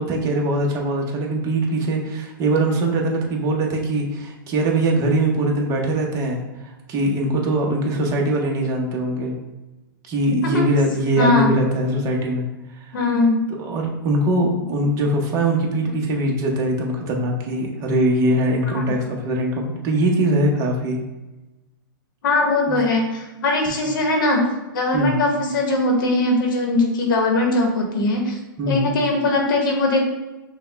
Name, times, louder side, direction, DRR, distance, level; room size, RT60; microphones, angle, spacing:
voice 1, 0.0-9.3 10.1-12.4 12.8-13.0 13.6-21.0 22.7-22.8 24.9-25.2 28.6-28.9, right 1 dB, 30° right, 0 dB, 0.8 m, -22 dB
voice 2, 11.2-11.5 12.9-13.5 18.7-19.0 22.2-24.4 24.7-28.4 28.7-30.0, left 2 dB, 70° left, 1 dB, 0.9 m, -20 dB
5.3 x 2.2 x 3.3 m, 1.1 s
hypercardioid pair, 140°, 11 cm